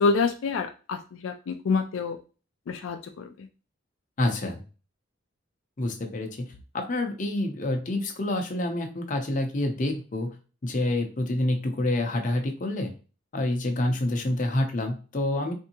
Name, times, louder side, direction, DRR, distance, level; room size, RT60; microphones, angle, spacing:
voice 1, 0.0-2.2 2.7-3.0, left 4 dB, 80° left, 5 dB, 0.4 m, -26 dB
voice 2, 4.2-4.6 5.8-6.5 6.7-10.3 10.6-12.9 13.3-15.5, left 1 dB, 40° left, 3 dB, 0.6 m, -27 dB
3.5 x 2.7 x 2.8 m, 0.34 s
head